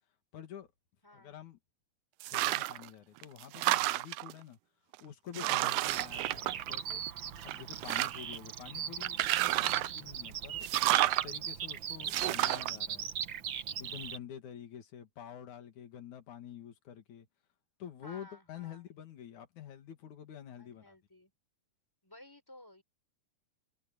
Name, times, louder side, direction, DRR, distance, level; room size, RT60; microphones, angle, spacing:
voice 1, 0.3-0.7 1.1-1.6 2.3-4.6 5.0-7.0 7.4-13.1 13.8-17.3 17.8-21.0, left 9 dB, 70° left, 3.4 m, -48 dB
voice 2, 1.0-1.4 5.9-6.3 18.0-18.8 20.6-21.3 22.0-22.8, left 1 dB, 5° left, 5.1 m, -55 dB
sound 1, 2.2-2.9 3.2-4.3 4.9-5.0 5.3-7.1 7.4-8.4 9.0-10.0 10.6-11.3 12.1-12.7, right 18 dB, 85° right, 2.2 m, -30 dB
Bird vocalization bird call bird song, 5.9-14.2, right 9 dB, 65° right, 1.2 m, -39 dB
omnidirectional pair, 3.6 m